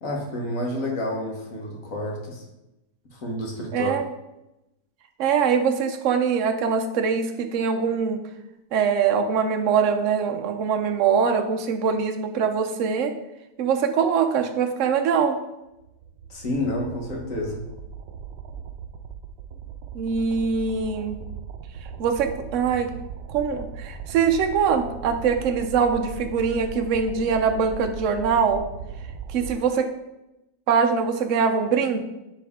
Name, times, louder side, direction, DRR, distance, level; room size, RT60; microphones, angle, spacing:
voice 1, 0.0-2.4 3.1-3.9 16.3-17.6, left 1 dB, 50° left, -1 dB, 1.6 m, -29 dB
voice 2, 3.7-4.1 5.2-8.2 8.7-13.1 13.6-15.4 19.9-21.1 22.0-22.9 23.3-28.6 29.3-29.9 30.7-32.0, right 6 dB, 60° right, 6 dB, 0.8 m, -23 dB
sound 1, 15.7-29.5, right 6 dB, 75° right, 1.3 m, -38 dB
10.0 x 3.5 x 3.6 m, 0.93 s
omnidirectional pair, 2.0 m